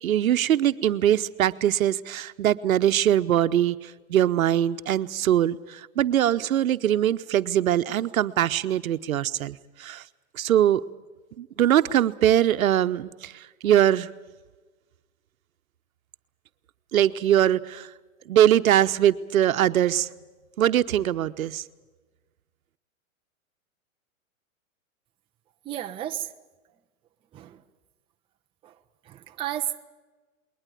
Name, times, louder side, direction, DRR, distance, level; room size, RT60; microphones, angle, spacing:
voice 1, 0.0-10.0 10.4-10.8 11.4-14.1 16.9-17.9 18.3-20.1 20.6-21.6, right 11 dB, 75° right, 11 dB, 1.0 m, -22 dB
voice 2, 25.6-26.3 27.3-27.6 28.6-28.7 29.1-29.9, right 12 dB, 15° right, 5 dB, 0.6 m, -32 dB
21.0 x 19.5 x 8.5 m, 1.3 s
hypercardioid pair, 135°, 41 cm